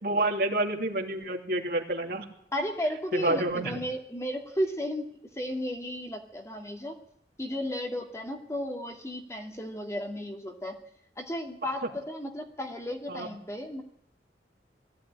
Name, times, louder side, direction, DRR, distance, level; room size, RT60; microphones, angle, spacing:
voice 1, 0.0-2.2 3.1-3.7 13.1-13.3, right 2 dB, 55° right, 2 dB, 2.9 m, -28 dB
voice 2, 2.5-5.1 5.4-7.0 7.4-10.8 11.2-13.8, equal, 15° left, 2 dB, 2.3 m, -34 dB
21.0 x 15.5 x 9.9 m, 0.72 s
head